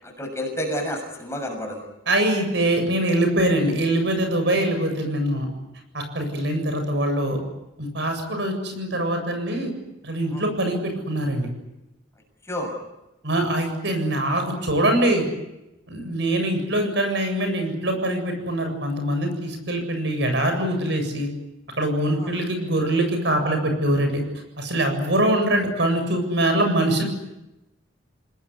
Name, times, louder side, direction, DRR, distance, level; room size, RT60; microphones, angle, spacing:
voice 1, 0.0-1.9 10.3-10.4 12.4-12.7 22.0-22.3, equal, 15° left, 2 dB, 6.7 m, -30 dB
voice 2, 2.1-5.5 5.9-7.4 7.8-9.7 10.0-11.5 13.2-15.2 15.9-21.3 21.8-24.2 24.6-27.0, right 1 dB, 65° right, 6 dB, 7.7 m, -23 dB
29.5 x 20.0 x 9.8 m, 0.93 s
head